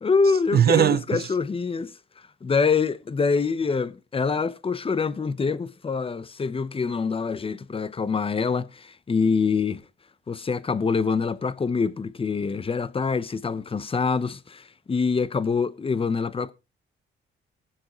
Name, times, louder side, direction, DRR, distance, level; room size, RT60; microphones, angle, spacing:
voice 1, 0.0-1.9 2.4-9.8 10.3-16.5, left 5 dB, 30° left, 0.9 m, -25 dB
voice 2, 0.5-1.2, right 10 dB, 50° right, 0.6 m, -19 dB
19.5 x 7.6 x 3.1 m
cardioid pair, 90°, 20 cm